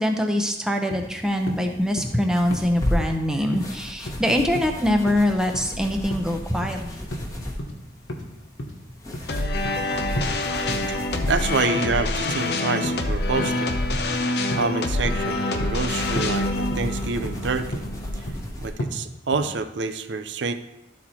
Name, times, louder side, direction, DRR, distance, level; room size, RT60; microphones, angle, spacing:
voice 1, 0.0-7.0, left 1 dB, 5° right, 4 dB, 0.7 m, -23 dB
sound 1, 0.9-1.1 1.5-1.6 2.0-2.2 2.5-2.7 3.0-3.2 3.5-3.7 4.1-4.2 4.6-4.7 5.1-5.3 5.5-5.7 6.1-6.3 6.6-6.8 7.1-7.3 7.6-7.7 8.1-8.3 8.6-8.8 9.1-9.9 10.2-10.3 10.7-10.9 11.2-11.4 11.7-12.0 12.3-12.5 12.8-13.0 13.4-13.5 13.9-14.1 14.5-14.6 15.1-15.3 15.6-15.8 16.2-16.3 16.7-17.0 17.2-17.4 17.7-17.9 18.3-18.5 18.8-18.9 19.3-19.5, equal, 85° left, 1.2 m, -32 dB
sound 2, 1.2-18.7, left 1 dB, 20° left, 1.1 m, -35 dB
sound 3, 9.3-18.4, left 2 dB, 60° left, 0.7 m, -26 dB
voice 2, 11.3-13.8 14.5-17.8 18.2-18.3 18.6-20.5, right 4 dB, 75° right, 9 dB, 0.6 m, -27 dB
12.0 x 4.3 x 4.3 m, 0.93 s
head